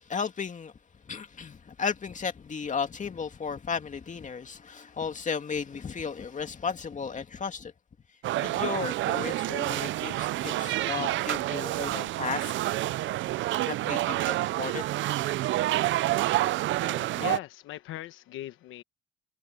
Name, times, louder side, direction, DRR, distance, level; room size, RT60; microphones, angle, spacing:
voice 1, 0.1-0.7 1.0-7.7 8.4-12.5 13.7-14.8, left 6 dB, 40° left, 2.3 m, -34 dB
sound 1, 8.2-17.4, right 15 dB, 75° right, 0.4 m, -28 dB
voice 2, 16.4-18.8, left 13 dB, 90° left, 1.1 m, -40 dB
cardioid pair, 90°, 20 cm